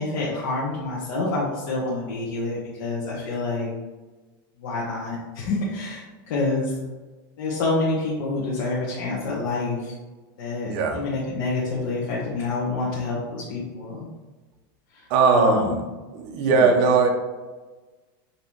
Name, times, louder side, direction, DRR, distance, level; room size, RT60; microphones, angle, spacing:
voice 1, 0.0-3.7 4.6-6.7 7.4-9.9 10.4-14.1 14.9-15.8 16.5-16.9, left 3 dB, 60° left, -5 dB, 1.0 m, -27 dB
voice 2, 10.7-11.0 15.1-15.7 16.1-17.1, right 4 dB, 45° right, 4 dB, 0.7 m, -19 dB
5.2 x 2.9 x 3.0 m, 1.2 s
supercardioid pair, 160°, 12 cm